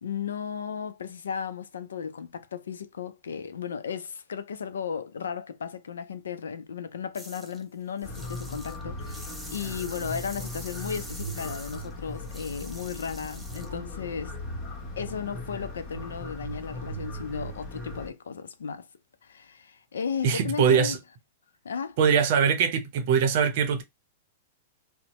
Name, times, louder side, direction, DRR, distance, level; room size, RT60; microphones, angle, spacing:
voice 1, 0.0-14.4 15.0-18.9 19.2-21.0 21.6-22.0, left 6 dB, 90° left, 0.4 m, -35 dB
sound 1, 7.1-7.6 8.0-13.8, right 1 dB, ahead, 0.6 m, -45 dB
sound 2, 8.0-18.1, left 1 dB, 35° left, 1.1 m, -38 dB
voice 2, 20.2-21.0 22.0-23.8, right 7 dB, 55° right, 0.6 m, -22 dB
2.7 x 2.0 x 3.0 m
hypercardioid pair, 125°, 0 cm